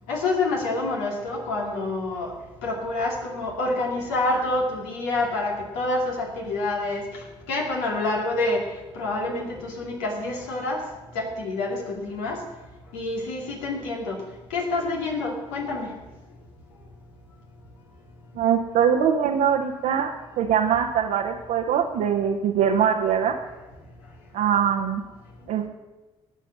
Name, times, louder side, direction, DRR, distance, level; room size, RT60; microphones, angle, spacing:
voice 1, 0.1-2.3 2.6-7.0 7.5-8.6 8.9-10.8 11.1-12.4 12.9-14.2 14.5-15.9, left 2 dB, 80° left, 0 dB, 2.6 m, -27 dB
voice 2, 18.3-23.3 24.3-25.0 25.5-25.7, right 8 dB, 70° right, 1 dB, 1.0 m, -22 dB
19.0 x 7.3 x 5.9 m, 1.1 s
hypercardioid pair, 45°, 15 cm